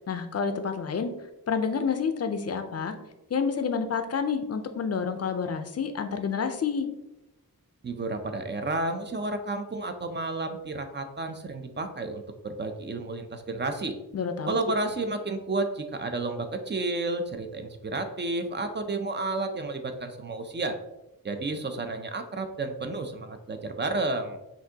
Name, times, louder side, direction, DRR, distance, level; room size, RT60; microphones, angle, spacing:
voice 1, 0.1-1.1 1.5-2.9 3.3-6.9 14.1-14.6, left 6 dB, 45° left, 8 dB, 0.4 m, -29 dB
voice 2, 7.8-14.0 14.5-20.8 21.2-24.4, right 2 dB, 30° right, 6 dB, 0.4 m, -31 dB
5.9 x 2.6 x 2.7 m, 0.95 s
wide cardioid pair, 125°, 36 cm